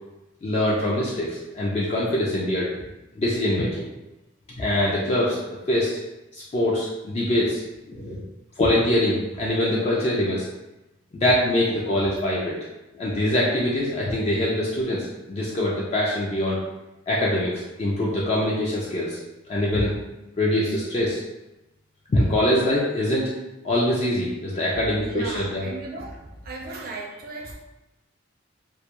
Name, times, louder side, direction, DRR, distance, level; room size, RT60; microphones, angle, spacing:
voice 1, 0.4-2.7 3.2-3.9 4.6-5.4 5.7-5.9 6.3-7.6 7.9-8.2 8.6-10.5 11.2-12.6 13.0-16.6 17.1-19.2 19.5-19.9 20.4-21.2 22.1-23.3 23.6-25.7, left 1 dB, 30° left, -5 dB, 0.3 m, -23 dB
voice 2, 24.7-27.5, right 2 dB, 45° right, -1 dB, 0.4 m, -36 dB
2.2 x 2.1 x 2.9 m, 0.99 s
head